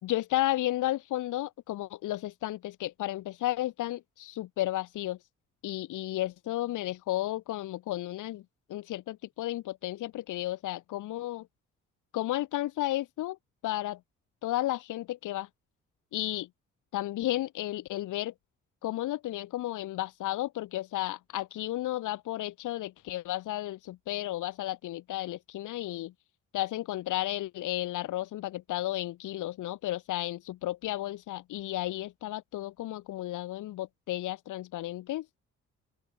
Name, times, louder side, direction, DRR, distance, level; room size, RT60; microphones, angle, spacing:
voice 1, 0.0-5.2 5.6-8.4 8.7-11.5 12.1-13.4 13.6-14.0 14.4-15.5 16.1-16.5 16.9-18.3 18.8-26.1 26.5-35.3, left 15 dB, 85° left, 2.1 m, -33 dB
open air
cardioid pair, 90°, 30 cm